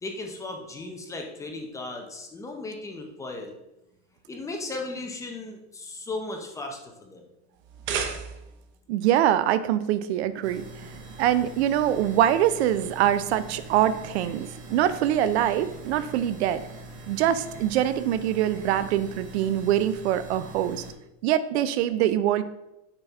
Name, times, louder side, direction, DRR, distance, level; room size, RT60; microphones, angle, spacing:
voice 1, 0.0-3.5 4.3-7.2, left 2 dB, 10° left, 2 dB, 0.6 m, -36 dB
sound 1, 7.6-8.7, right 6 dB, 35° right, 0.7 m, -32 dB
voice 2, 8.9-10.6 11.2-16.6 17.1-20.8 21.2-22.4, right 11 dB, 70° right, 14 dB, 0.5 m, -24 dB
sound 2, 10.4-20.9, right 2 dB, 50° right, 1.4 m, -43 dB
6.8 x 5.8 x 3.5 m, 0.92 s
supercardioid pair, 155°, 34 cm